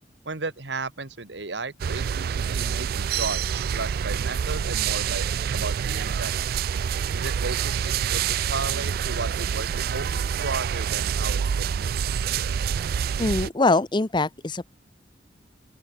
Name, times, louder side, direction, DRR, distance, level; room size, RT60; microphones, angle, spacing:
voice 1, 0.3-5.3 5.5-6.3 7.1-12.0, right 3 dB, 85° right, 1.9 m, -34 dB
sound 1, 1.8-13.5, right 7 dB, 55° right, 0.3 m, -27 dB
voice 2, 13.2-14.7, left 2 dB, 25° left, 0.8 m, -23 dB
open air
head